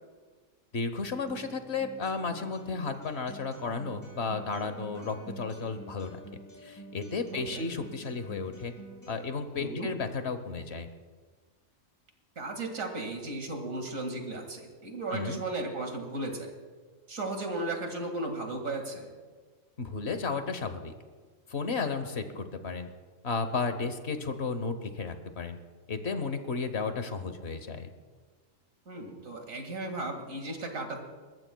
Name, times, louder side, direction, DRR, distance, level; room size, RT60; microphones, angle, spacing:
voice 1, 0.7-6.2 6.6-8.7 9.1-10.9 15.1-15.4 19.8-20.9 21.5-22.9 23.2-25.6 25.9-27.9, left 4 dB, 55° left, 9 dB, 1.2 m, -33 dB
Acoustic guitar, 1.3-9.2, right 2 dB, 15° left, 5.7 m, -48 dB
voice 2, 7.3-7.7 9.6-9.9 12.4-16.5 17.1-19.1 28.9-31.0, right 2 dB, 85° right, 3 dB, 2.5 m, -35 dB
30.0 x 14.5 x 2.3 m, 1.5 s
omnidirectional pair, 1.4 m